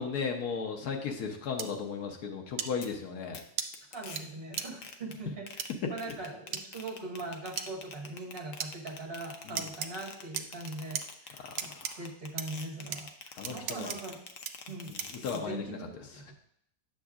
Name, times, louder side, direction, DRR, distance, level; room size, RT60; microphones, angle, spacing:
voice 1, 0.0-3.4 9.5-9.6 11.8-12.0 13.4-13.9 15.2-15.8, left 5 dB, 90° left, 2 dB, 1.3 m, -35 dB
sound 1, 1.6-1.7 2.6-2.7 3.6-3.7 4.2-4.3 4.6-4.7 5.6-5.7 6.5-6.6 7.6-7.7 8.6-8.7 9.6-9.9 10.3-11.0 11.6-11.9 12.4-12.5 12.9-13.0 13.4-14.0 14.4-14.5 15.0-15.2, right 8 dB, 65° right, 0.6 m, -35 dB
sound 2, 2.8-2.9 3.3-3.4 3.7-4.2 4.5-5.1 5.5-15.4, left 5 dB, 65° left, 1.0 m, -46 dB
voice 2, 3.9-5.6 5.9-14.2 14.7-16.3, right 2 dB, 40° right, -3 dB, 1.8 m, -41 dB
9.1 x 6.8 x 2.4 m, 0.72 s
omnidirectional pair, 1.6 m